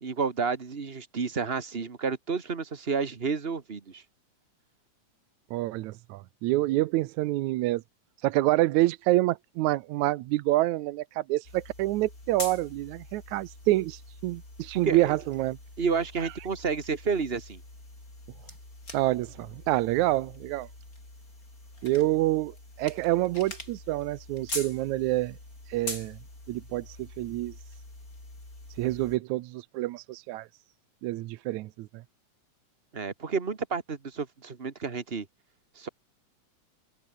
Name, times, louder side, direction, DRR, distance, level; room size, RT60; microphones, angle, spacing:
voice 1, 0.0-4.0 14.8-15.1 15.8-17.6 32.9-35.3 35.8-35.9, right 5 dB, 30° right, 1.2 m, -30 dB
voice 2, 5.5-7.8 8.2-15.6 16.2-16.3 18.9-20.7 21.8-25.4 25.7-26.2 26.5-27.6 28.8-30.5 31.0-31.9, right 17 dB, 80° right, 2.1 m, -27 dB
sound 1, 11.4-29.2, left 2 dB, 25° left, 7.6 m, -44 dB
omnidirectional pair, 3.4 m